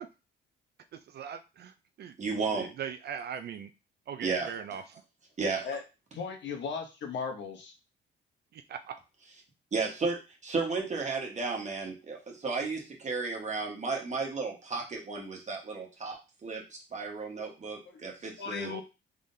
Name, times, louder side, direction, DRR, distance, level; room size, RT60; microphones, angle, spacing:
voice 1, 0.9-2.2 2.5-3.7 4.1-4.8 8.5-8.9 18.6-18.8, right 8 dB, 55° right, 8 dB, 0.4 m, -40 dB
voice 2, 2.2-2.7 4.2-4.5 5.4-5.7 9.7-18.7, right 4 dB, 35° right, 1 dB, 1.3 m, -33 dB
voice 3, 6.1-7.7 17.9-18.0 18.4-18.8, left 5 dB, 65° left, 4 dB, 1.0 m, -36 dB
3.6 x 3.3 x 2.6 m, 0.28 s
cardioid pair, 90°, 20 cm